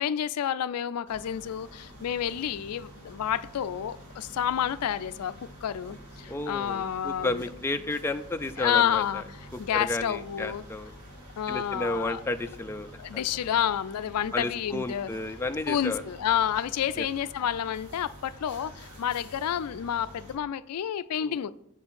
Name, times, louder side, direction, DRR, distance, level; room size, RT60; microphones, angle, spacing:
voice 1, 0.0-5.3 5.6-7.4 8.6-9.2 9.6-10.6 11.4-12.2 13.0-15.1 15.7-21.5, left 9 dB, 80° left, 0.4 m, -29 dB
sound 1, 1.1-20.4, equal, 90° right, 3.1 m, -48 dB
voice 2, 6.3-9.2 9.7-10.9 11.5-12.9 14.3-16.0 17.0-17.1 21.2-21.4, left 2 dB, 10° left, 0.3 m, -32 dB
7.2 x 4.4 x 6.9 m
head